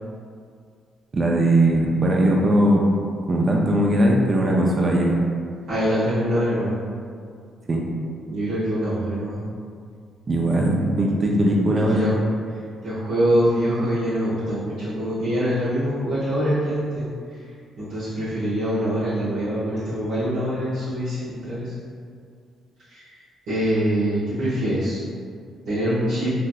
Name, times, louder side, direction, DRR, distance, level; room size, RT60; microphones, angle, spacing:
voice 1, 1.1-2.8 3.3-5.1 7.7-7.8 10.3-12.1, right 1 dB, 35° right, -1 dB, 0.4 m, -19 dB
voice 2, 5.7-6.8 8.3-9.4 11.9-12.2 12.8-17.0 17.8-21.7 22.9-23.1 23.5-25.0 25.7-26.3, equal, 85° right, -14 dB, 1.1 m, -24 dB
3.3 x 2.6 x 2.2 m, 2.2 s
cardioid pair, 90°, 0 cm